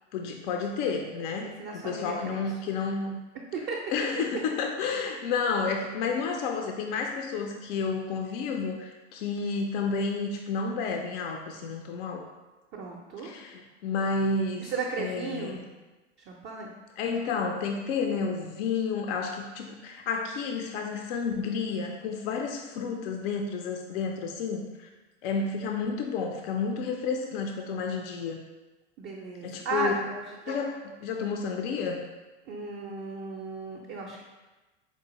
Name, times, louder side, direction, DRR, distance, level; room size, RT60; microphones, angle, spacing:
voice 1, 0.1-1.5 1.7-3.2 3.9-12.2 13.2-14.7 15.0-15.6 17.0-24.9 25.2-28.4 29.4-29.9 30.5-32.0, left 5 dB, 50° left, 2 dB, 0.5 m, -31 dB
voice 2, 1.4-2.4 3.5-3.8 12.7-13.3 14.6-15.6 16.3-16.7 29.0-30.5 32.5-34.2, right 3 dB, 30° right, -2 dB, 0.4 m, -35 dB
4.5 x 2.4 x 2.9 m, 1.2 s
hypercardioid pair, 100°, 37 cm